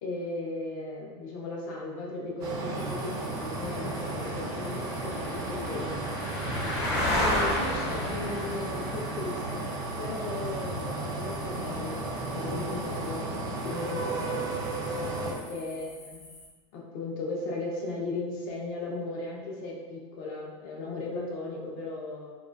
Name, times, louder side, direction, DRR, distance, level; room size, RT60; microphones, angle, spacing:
voice 1, 0.0-6.1 7.2-9.7 10.0-14.5 15.2-16.2 16.7-22.4, left 2 dB, 45° left, -2 dB, 0.6 m, -36 dB
sound 1, 2.4-15.3, right 2 dB, 25° right, 0.3 m, -34 dB
sound 2, 2.8-16.5, left 1 dB, 65° left, 0.9 m, -36 dB
3.7 x 2.2 x 2.5 m, 1.3 s
supercardioid pair, 180°, 15 cm